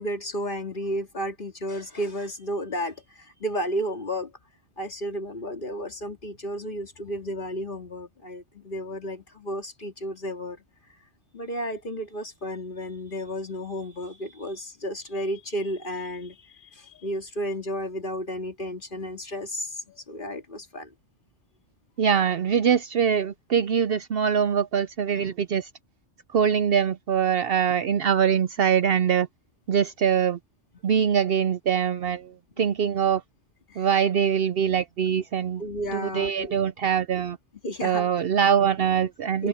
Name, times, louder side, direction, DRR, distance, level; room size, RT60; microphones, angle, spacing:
voice 1, 0.0-4.3 4.8-10.6 11.3-20.9 33.7-33.9 35.6-36.5 37.6-38.1 39.4-39.5, equal, 45° left, 2.3 m, -32 dB
voice 2, 22.0-25.7 26.3-29.3 29.7-30.4 30.8-33.2 33.8-35.6 35.9-37.4 37.8-39.5, right 8 dB, 60° right, 0.7 m, -23 dB
omnidirectional pair, 1.2 m